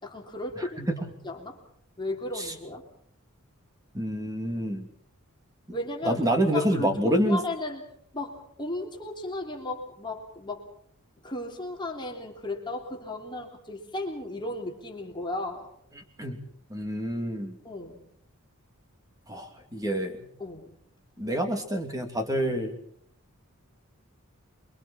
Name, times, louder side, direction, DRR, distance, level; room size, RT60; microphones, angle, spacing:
voice 1, 0.0-0.9 1.2-1.6 2.0-2.8 5.7-6.2 6.5-7.8 8.1-10.6 11.2-15.7 17.6-18.0 20.4-20.7, left 2 dB, 20° left, 1 dB, 3.2 m, -35 dB
voice 2, 0.6-1.1 2.3-2.5 3.9-4.9 6.0-7.4 16.2-16.4 16.7-17.6 19.3-20.2 21.2-22.8, equal, 15° right, 4 dB, 2.7 m, -27 dB
28.0 x 23.0 x 4.4 m, 0.66 s
head